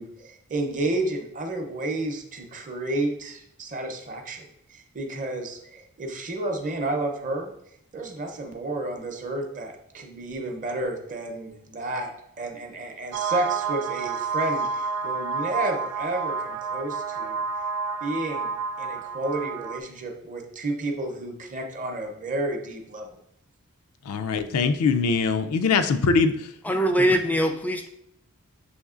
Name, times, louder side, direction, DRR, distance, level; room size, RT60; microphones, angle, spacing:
voice 1, 0.0-7.5 7.9-12.1 12.4-17.4 18.0-23.2, right 2 dB, 35° right, 0.6 m, -31 dB
sound 1, 13.1-19.8, right 4 dB, 75° right, 0.3 m, -29 dB
voice 2, 24.1-26.5, left 4 dB, 85° left, 0.4 m, -22 dB
voice 3, 26.7-27.9, equal, 5° left, 0.3 m, -22 dB
6.3 x 3.0 x 2.4 m
head